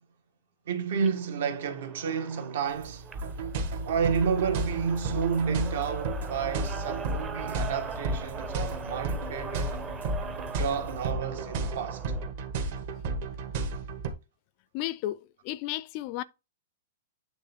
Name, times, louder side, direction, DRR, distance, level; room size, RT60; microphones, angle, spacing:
voice 1, 0.7-3.1 3.8-9.8 10.6-12.1, right 6 dB, 60° right, 1.5 m, -30 dB
sound 1, 0.9-12.3, right 5 dB, 15° right, 0.7 m, -42 dB
sound 2, 2.6-11.1, right 4 dB, 80° right, 2.5 m, -49 dB
sound 3, 3.1-14.1, right 2 dB, 45° right, 1.5 m, -33 dB
voice 2, 14.7-16.2, left 15 dB, 35° left, 0.4 m, -33 dB
8.9 x 3.5 x 4.2 m
hypercardioid pair, 160°, 0 cm